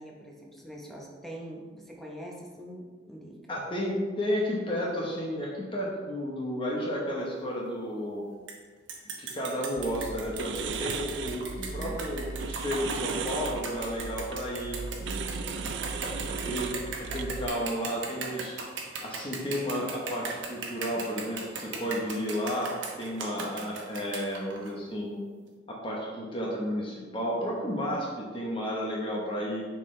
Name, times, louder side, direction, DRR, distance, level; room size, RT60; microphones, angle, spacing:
voice 1, 0.0-3.6 11.6-12.0 15.0-15.7 16.0-16.5, equal, ahead, -2 dB, 0.9 m, -44 dB
voice 2, 3.5-8.2 9.2-14.8 16.0-16.7 17.0-18.6 19.0-25.2 25.7-29.6, equal, 30° left, -3 dB, 1.0 m, -32 dB
sound 1, 8.5-8.6 8.9-24.7, right 4 dB, 90° right, 1.0 m, -38 dB
sound 2, 9.8-17.5, right 5 dB, 65° right, 0.4 m, -36 dB
7.0 x 4.6 x 3.2 m, 1.5 s
head